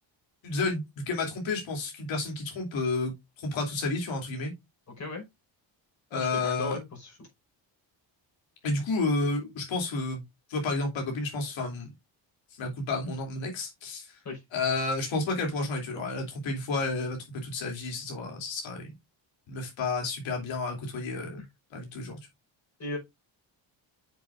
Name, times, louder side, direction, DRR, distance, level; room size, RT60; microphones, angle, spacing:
voice 1, 0.4-4.5 6.1-6.8 8.6-10.2 10.5-11.9 12.5-14.2 14.5-18.9 19.5-21.4 21.7-22.2, left 3 dB, 85° left, 3.1 m, -31 dB
voice 2, 6.1-7.2 14.2-14.4 21.4-21.5 22.8-23.0, left 3 dB, 35° left, 5.3 m, -36 dB
8.2 x 7.3 x 2.5 m
cardioid pair, 120°, 45 cm